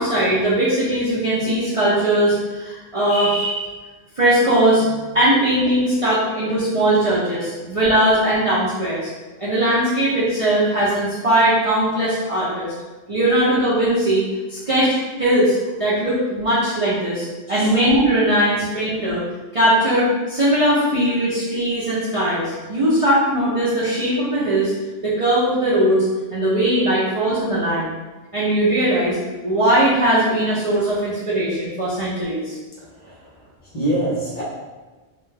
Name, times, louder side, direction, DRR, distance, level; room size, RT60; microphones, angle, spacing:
voice 1, 0.0-3.7 4.2-4.8 5.1-9.1 9.4-12.7 13.1-14.9 15.2-19.3 19.5-24.7 25.0-26.1 26.3-27.9 28.3-29.2 29.4-32.6, right 1 dB, 45° right, -10 dB, 0.4 m, -19 dB
voice 2, 17.4-17.8 32.8-34.4, right 1 dB, 45° left, -7 dB, 0.7 m, -26 dB
2.3 x 2.2 x 3.2 m, 1.3 s
omnidirectional pair, 1.2 m